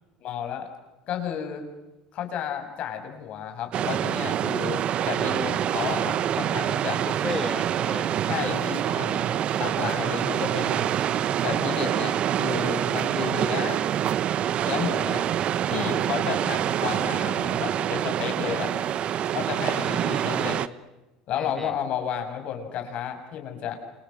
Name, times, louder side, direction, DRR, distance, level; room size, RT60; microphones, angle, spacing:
voice 1, 0.2-0.7 1.1-1.6 2.1-7.0 8.3-9.2 9.6-10.9 11.4-13.9 14.6-15.3 15.7-18.7 19.3-20.6 21.3-23.8, left 8 dB, 55° left, 6 dB, 6.8 m, -32 dB
sound 1, 3.7-20.7, right 10 dB, 50° right, 1.2 m, -26 dB
voice 2, 6.9-8.3 19.6-20.3 21.3-21.7, left 3 dB, 15° left, 11 dB, 2.2 m, -35 dB
28.5 x 28.0 x 6.5 m, 1.1 s
supercardioid pair, 90°, 3 cm